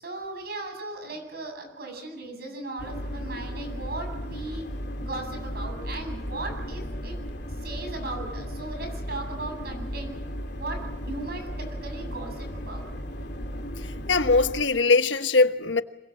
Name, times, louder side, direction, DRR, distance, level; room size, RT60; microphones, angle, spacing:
voice 1, 0.0-4.7 5.0-7.1 7.6-10.1 10.6-12.9, right 2 dB, 55° right, 8.0 m, -37 dB
sound 1, 2.8-14.6, equal, 65° left, 2.9 m, -35 dB
voice 2, 14.1-15.8, left 3 dB, 80° left, 1.2 m, -21 dB
26.5 x 22.0 x 7.5 m
head